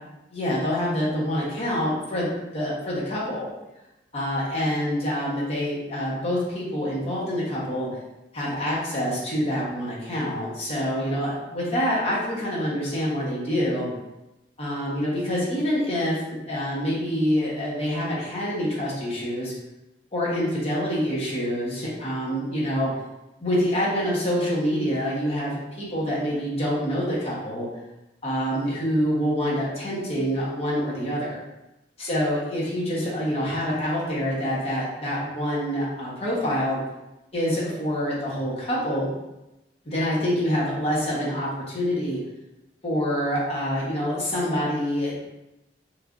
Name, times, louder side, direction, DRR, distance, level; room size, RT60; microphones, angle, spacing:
voice 1, 0.3-3.5 4.1-7.9 8.3-13.9 14.6-19.5 20.1-22.9 23.4-27.7 28.2-31.4 32.0-36.8 37.3-39.1 39.8-42.2 42.8-45.2, equal, 35° left, -6 dB, 0.8 m, -26 dB
3.2 x 2.4 x 2.4 m, 0.98 s
head